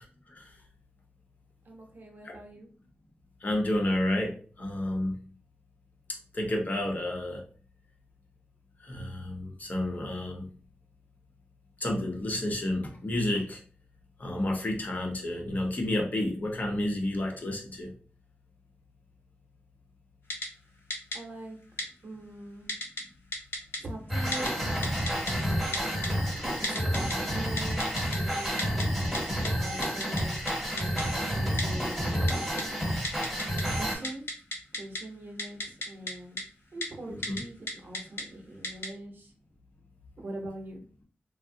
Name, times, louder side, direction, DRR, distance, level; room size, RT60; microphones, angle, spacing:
voice 1, 1.7-2.7 21.1-22.8 23.8-25.9 26.6-28.0 28.2-30.4 30.8-32.5 33.7-34.3 34.7-36.4 36.7-39.3 40.2-40.9, right 1 dB, 55° right, 1 dB, 0.8 m, -43 dB
voice 2, 3.4-5.2 6.3-7.4 8.8-10.5 11.8-13.6 14.2-17.9 32.9-33.0 37.1-37.4, left 1 dB, 45° left, 0 dB, 0.8 m, -30 dB
Typing, 20.3-20.5 20.9-21.2 21.8-21.9 22.7-23.0 23.3-23.8 24.3-24.5 24.8-25.3 25.7-26.1 26.6-27.1 27.6-28.2 28.6-28.8 29.1-29.2 29.4-29.5 29.8-30.2 30.5-30.6 30.8-31.0 31.6-31.7 32.3-32.6 33.0-33.6 33.9-35.0 35.4-36.1 36.4-36.5 36.8-36.9 37.2-37.4 37.7-38.2 38.6-38.9, left 1 dB, 75° left, 0.6 m, -33 dB
sound 1, 24.1-34.0, equal, ahead, 1.2 m, -30 dB
3.5 x 2.0 x 2.6 m, 0.41 s
wide cardioid pair, 130°, 4 cm